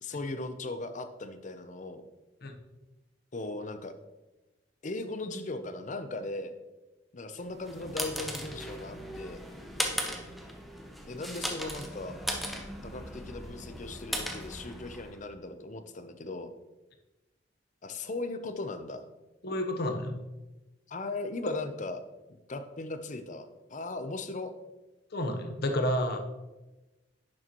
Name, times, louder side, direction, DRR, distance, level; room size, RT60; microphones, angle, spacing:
voice 1, 0.0-2.1 3.3-3.9 4.8-6.5 7.1-9.5 11.1-12.2 12.8-16.5 17.8-19.0 20.9-22.0 22.3-24.5, left 2 dB, 40° left, 9 dB, 0.6 m, -38 dB
sound 1, 7.5-15.2, equal, ahead, 0.8 m, -37 dB
voice 2, 19.4-20.2 25.1-26.2, left 1 dB, 55° left, 5 dB, 0.9 m, -30 dB
10.5 x 6.4 x 3.0 m, 1.1 s
head